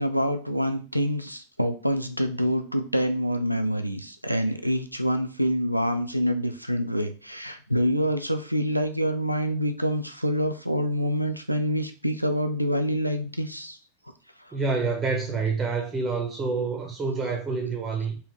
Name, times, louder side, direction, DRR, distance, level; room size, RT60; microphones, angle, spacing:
voice 1, 0.0-13.8, equal, 90° right, 7 dB, 0.4 m, -26 dB
voice 2, 14.5-18.2, right 4 dB, 20° right, 2 dB, 0.7 m, -27 dB
3.3 x 2.6 x 3.1 m, 0.37 s
figure-of-eight pair, 90°, 0 cm